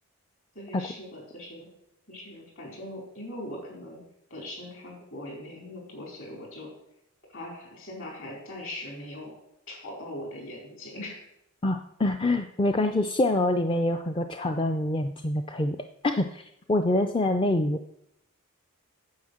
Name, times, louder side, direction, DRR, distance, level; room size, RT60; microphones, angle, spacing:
voice 1, 0.5-1.7 2.1-4.0 4.3-6.7 7.3-9.3 9.7-11.3, left 1 dB, 60° left, -1 dB, 4.6 m, -40 dB
voice 2, 11.6-15.8 16.0-17.8, left 1 dB, 20° left, 6 dB, 0.4 m, -25 dB
9.5 x 7.8 x 6.5 m, 0.79 s
head